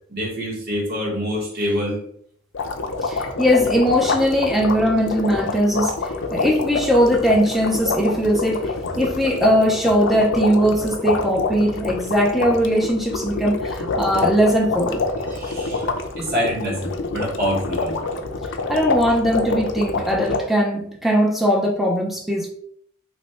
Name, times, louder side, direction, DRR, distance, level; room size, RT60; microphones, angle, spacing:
voice 1, 0.1-2.0 15.3-15.9 16.2-18.0, equal, 45° right, -2 dB, 1.2 m, -26 dB
sound 1, 2.5-20.4, left 3 dB, 60° left, 0.5 m, -26 dB
voice 2, 3.0-15.0 18.7-22.5, equal, ahead, 0 dB, 0.6 m, -20 dB
3.1 x 2.2 x 4.2 m, 0.65 s
head